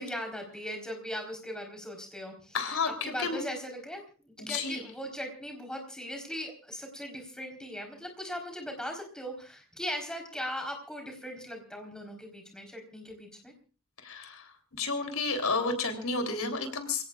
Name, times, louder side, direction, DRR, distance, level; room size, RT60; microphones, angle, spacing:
voice 1, 0.0-13.5, equal, 5° left, 3 dB, 4.1 m, -39 dB
voice 2, 2.5-2.9 3.2-3.4 4.5-4.8 14.0-14.3 14.8-17.1, left 4 dB, 85° left, 6 dB, 3.5 m, -31 dB
28.0 x 17.5 x 2.4 m, 0.36 s
head